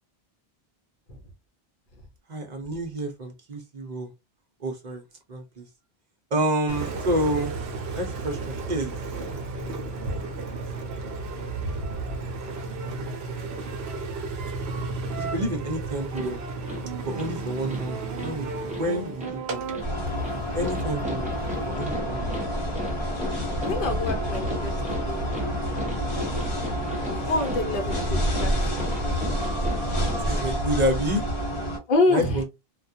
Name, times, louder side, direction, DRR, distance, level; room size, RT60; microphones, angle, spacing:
voice 1, 2.3-4.1 4.6-5.0 5.3-5.7 6.3-7.5 7.9-9.0 15.2-16.4 17.1-19.6 20.5-21.3 21.7-22.4 30.3-31.2 32.1-32.4, right 1 dB, 50° right, 0.7 m, -29 dB
Engine, 6.7-21.7, right 3 dB, 85° right, 0.9 m, -33 dB
sound 1, 16.1-30.5, left 1 dB, 10° right, 0.6 m, -37 dB
sound 2, 19.8-31.8, equal, 30° left, 0.8 m, -28 dB
voice 2, 23.6-25.3 27.3-28.7 31.9-32.4, left 2 dB, 60° left, 0.9 m, -26 dB
2.3 x 2.1 x 2.6 m
omnidirectional pair, 1.0 m